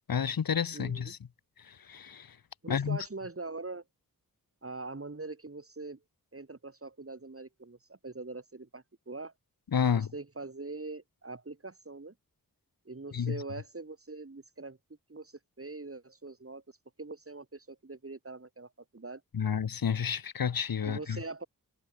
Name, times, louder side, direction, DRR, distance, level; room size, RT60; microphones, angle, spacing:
voice 1, 0.1-1.2 1.7-2.3 2.7-3.0 9.7-10.1 13.1-13.4 19.3-21.2, left 7 dB, 90° left, 1.2 m, -30 dB
voice 2, 0.7-1.2 2.6-3.8 4.6-6.0 6.3-9.3 9.9-12.1 12.9-14.8 15.1-16.6 17.0-19.2 20.8-21.5, right 3 dB, 40° right, 5.9 m, -43 dB
wide cardioid pair, 80°, 34 cm